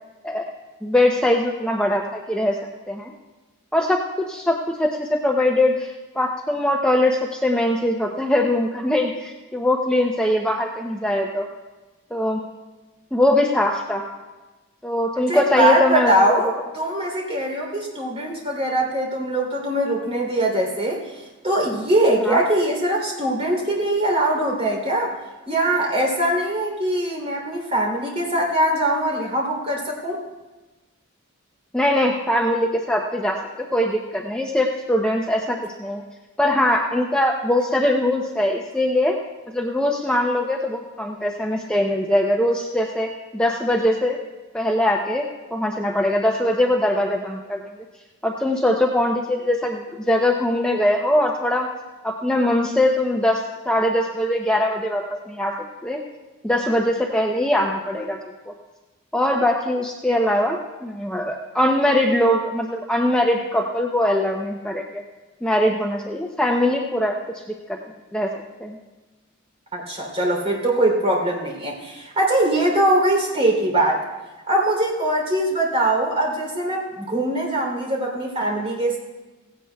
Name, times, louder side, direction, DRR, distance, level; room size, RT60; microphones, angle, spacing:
voice 1, 0.8-2.6 2.9-3.1 3.7-4.0 4.3-11.5 12.1-12.4 13.1-14.0 14.8-16.4 22.3-22.4 31.7-36.0 36.4-39.2 39.5-44.2 44.5-47.6 48.2-51.7 52.0-55.5 55.8-56.0 56.4-58.2 58.5-58.6 59.1-65.0 65.4-67.2 67.7-67.8 68.1-68.3 68.6-68.8, left 1 dB, 5° left, 0 dB, 0.6 m, -21 dB
voice 2, 15.3-25.1 25.5-30.2 69.7-74.0 74.5-79.0, right 1 dB, 30° right, -1 dB, 3.2 m, -22 dB
17.0 x 16.5 x 2.3 m, 1.2 s
head